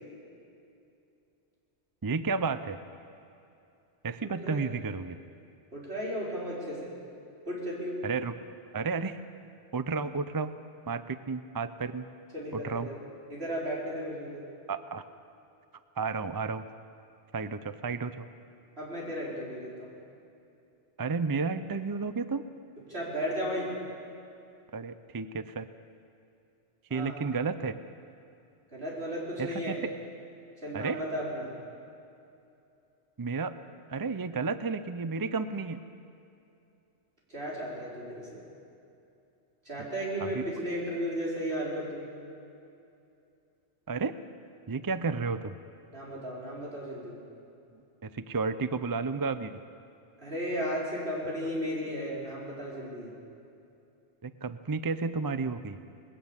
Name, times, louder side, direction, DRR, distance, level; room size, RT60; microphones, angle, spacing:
voice 1, 2.0-2.8 4.0-5.2 8.0-8.3 8.7-9.2 9.7-10.5 10.9-12.1 12.5-12.9 14.7-15.0 16.0-16.6 17.3-18.3 21.0-22.4 24.7-25.7 26.9-27.7 29.4-29.8 30.7-31.0 33.2-33.5 33.9-35.8 40.3-40.4 43.9-44.1 44.7-45.5 48.0-49.6 54.2-55.8, right 4 dB, 30° right, 12 dB, 0.4 m, -32 dB
voice 2, 5.7-6.9 7.5-8.0 12.3-14.4 18.8-19.9 22.9-23.7 26.9-27.1 28.7-29.8 30.6-31.5 37.3-38.4 39.6-42.0 45.9-47.2 50.2-53.1, equal, 60° right, -5 dB, 5.1 m, -35 dB
20.5 x 17.5 x 7.3 m, 2.7 s
omnidirectional pair, 1.2 m